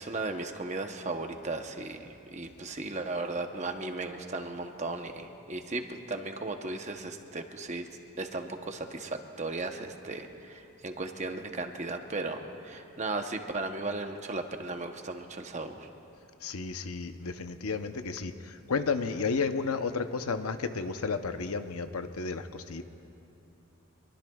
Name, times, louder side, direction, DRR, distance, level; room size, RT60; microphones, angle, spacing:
voice 1, 0.0-7.9 8.2-15.9, right 2 dB, 30° right, 5 dB, 0.8 m, -36 dB
voice 2, 16.4-22.8, left 4 dB, 90° left, 8 dB, 0.8 m, -32 dB
25.0 x 23.0 x 2.3 m, 2.9 s
head